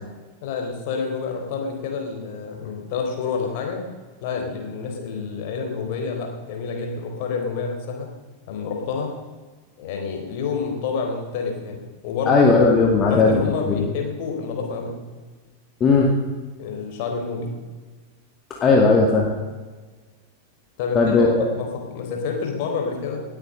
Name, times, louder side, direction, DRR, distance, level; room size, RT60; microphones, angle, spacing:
voice 1, 0.4-3.8 4.2-8.1 8.5-9.1 9.8-12.5 13.1-15.0 16.6-17.6 20.8-23.2, left 5 dB, 50° left, 2 dB, 3.7 m, -28 dB
voice 2, 12.2-13.3 13.7-13.8 15.8-16.1 18.5-19.3 20.9-21.5, left 4 dB, 25° left, 0 dB, 2.2 m, -17 dB
18.5 x 8.8 x 6.6 m, 1.4 s
figure-of-eight pair, 90°, 0 cm